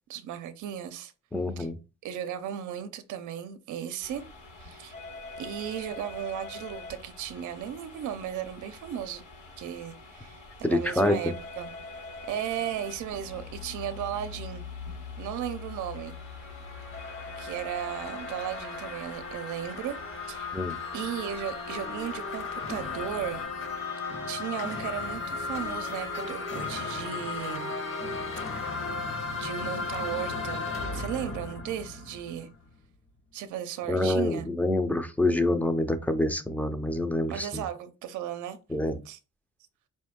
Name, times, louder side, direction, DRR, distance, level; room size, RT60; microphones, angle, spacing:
voice 1, 0.1-1.1 1.6-1.7 2.0-4.2 4.6-4.9 5.4-9.2 9.6-11.7 12.3-14.6 15.2-16.2 17.4-20.0 20.2-20.5 20.9-23.4 24.3-27.7 29.4-30.7 30.9-32.5 33.3-34.5 37.3-38.6 39.1-39.2, right 10 dB, 75° right, 0.6 m, -35 dB
voice 2, 1.3-1.8 10.6-11.2 20.5-20.8 33.9-37.6 38.7-39.0, left 1 dB, 5° left, 0.5 m, -26 dB
sound 1, 4.0-23.5, left 2 dB, 80° left, 1.5 m, -45 dB
sound 2, 12.6-20.3, left 6 dB, 65° left, 0.7 m, -44 dB
sound 3, 15.7-32.7, left 4 dB, 45° left, 1.1 m, -36 dB
4.3 x 2.7 x 3.6 m
cardioid pair, 90°, 30 cm